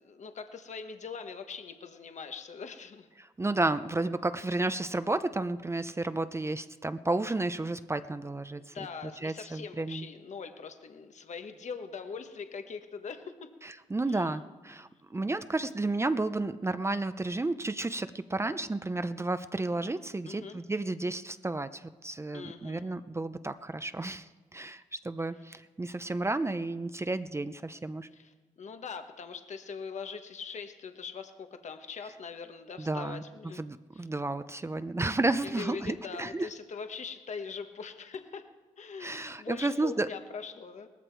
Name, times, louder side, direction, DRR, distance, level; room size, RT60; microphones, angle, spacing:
voice 1, 0.0-3.1 8.7-13.5 14.1-14.4 20.2-20.6 22.3-22.9 28.1-33.6 33.9-34.0 35.4-38.5 38.8-40.9, left 5 dB, 60° left, 7 dB, 1.2 m, -42 dB
voice 2, 3.4-8.7 9.0-10.1 13.6-28.1 32.8-33.2 33.6-36.5 39.0-40.1, right 2 dB, 20° right, 11 dB, 0.6 m, -32 dB
18.5 x 14.0 x 4.6 m, 1.3 s
cardioid pair, 75°, 14 cm